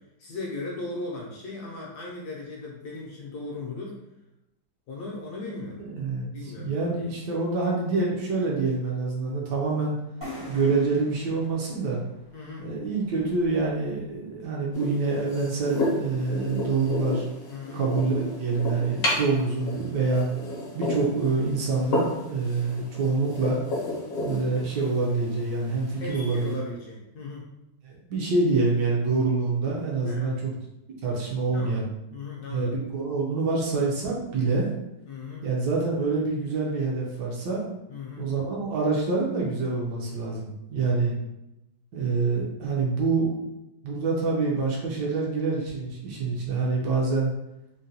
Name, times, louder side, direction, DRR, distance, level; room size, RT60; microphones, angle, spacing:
voice 1, 0.2-4.0 4.9-5.8 6.3-7.1 12.3-12.7 17.5-17.9 26.0-27.5 30.1-30.4 31.5-32.8 35.0-35.4 37.9-38.3 40.8-41.3, left 3 dB, 70° left, -3 dB, 1.0 m, -37 dB
voice 2, 5.9-10.0 10.5-12.0 12.6-17.2 17.7-20.3 20.7-23.6 24.2-26.5 27.8-30.5 31.0-31.8 32.5-34.7 35.4-37.6 38.2-41.1 41.9-43.4 43.8-47.3, right 3 dB, 70° right, -2 dB, 1.2 m, -26 dB
sound 1, 10.2-13.8, equal, 40° right, 0.4 m, -44 dB
sound 2, 14.7-26.6, left 1 dB, 50° left, 0.7 m, -32 dB
3.8 x 2.2 x 2.7 m, 0.93 s
omnidirectional pair, 2.0 m